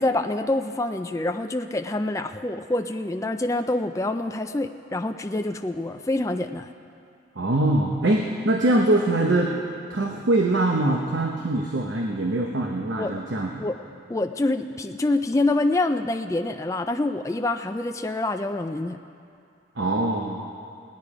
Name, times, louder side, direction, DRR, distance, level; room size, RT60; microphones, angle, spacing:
voice 1, 0.0-6.7 13.0-13.2 13.6-13.8 14.1-19.0, left 2 dB, 15° left, 6 dB, 0.4 m, -26 dB
voice 2, 7.4-9.5 9.9-13.6 19.8-20.4, right 2 dB, 75° right, 1 dB, 1.0 m, -23 dB
18.0 x 10.5 x 4.9 m, 2.5 s
head